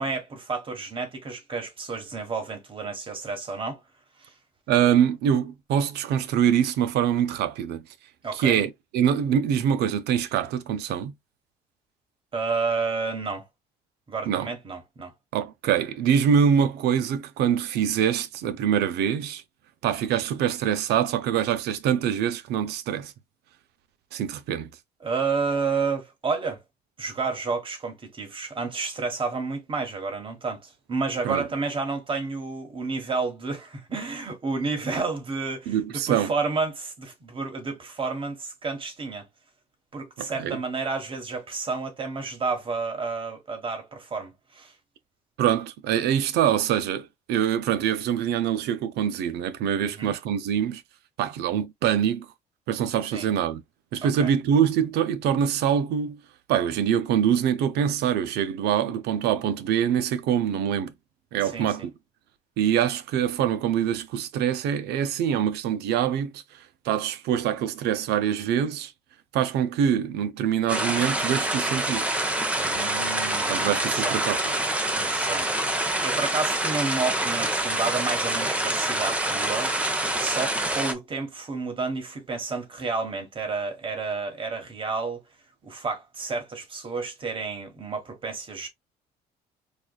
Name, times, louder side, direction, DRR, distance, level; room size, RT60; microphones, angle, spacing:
voice 1, 0.0-3.8 4.2-4.3 8.2-8.6 12.3-13.5 14.1-15.1 25.0-26.6 27.0-39.2 39.9-44.7 49.8-50.2 53.1-53.3 54.0-54.3 61.4-61.9 72.5-74.2 75.0-75.5 76.0-85.2 85.6-88.7, right 4 dB, 30° right, 1.4 m, -30 dB
voice 2, 4.7-7.8 8.3-11.1 14.3-14.5 15.3-19.4 19.8-23.1 24.1-24.7 31.2-31.4 35.7-36.3 40.2-40.6 45.4-50.8 51.2-52.3 52.7-53.6 53.9-56.2 56.5-60.9 61.3-61.9 62.6-66.4 66.9-68.9 69.3-72.0 73.5-74.4, right 9 dB, 75° right, 0.5 m, -24 dB
sound 1, 70.7-80.9, right 1 dB, 10° right, 0.6 m, -26 dB
4.7 x 2.3 x 2.3 m
cardioid pair, 110°, 17 cm